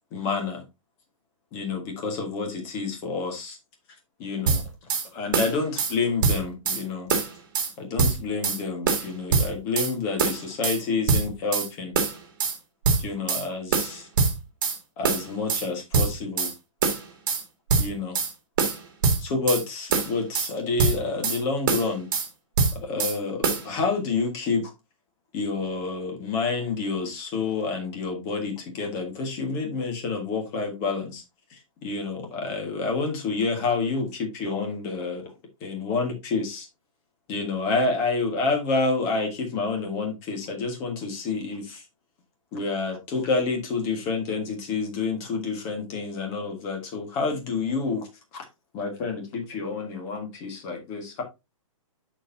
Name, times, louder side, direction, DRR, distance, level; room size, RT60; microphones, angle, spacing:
voice 1, 0.1-0.6 1.5-3.6 4.2-4.6 5.1-7.1 7.8-11.9 13.0-14.1 15.0-16.5 17.8-18.2 19.2-22.1 22.7-24.7 25.3-31.2 31.8-35.2 35.6-36.7 37.3-41.8 42.5-48.1 48.3-48.4 48.7-51.2, left 4 dB, 15° left, 2 dB, 1.5 m, -28 dB
sound 1, 4.5-5.1 5.3-5.9 6.2-6.8 7.1-7.7 8.0-8.6 8.9-9.9 10.2-10.8 11.1-11.7 12.0-12.6 12.9-13.4 13.7-14.8 15.0-15.7 15.9-16.5 16.8-17.4 17.7-18.3 18.6-19.6 19.9-20.5 20.8-21.4 21.7-22.3 22.6-23.2 23.4-23.7, right 5 dB, 40° right, 1.7 m, -24 dB
12.5 x 4.5 x 2.6 m, 0.24 s
hypercardioid pair, 180°, 17 cm